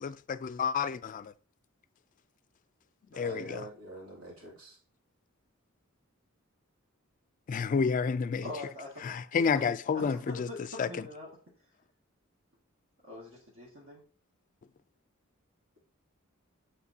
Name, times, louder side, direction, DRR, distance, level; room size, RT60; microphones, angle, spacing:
voice 1, 0.0-1.3 3.2-3.7 7.5-8.4 9.0-10.5 10.8-10.9, left 5 dB, 40° left, 0.3 m, -30 dB
voice 2, 3.1-4.8 9.4-9.6, right 2 dB, 85° right, 2.7 m, -45 dB
voice 3, 8.4-11.3 13.0-14.0, left 2 dB, 65° right, 1.9 m, -44 dB
8.4 x 4.4 x 2.7 m
head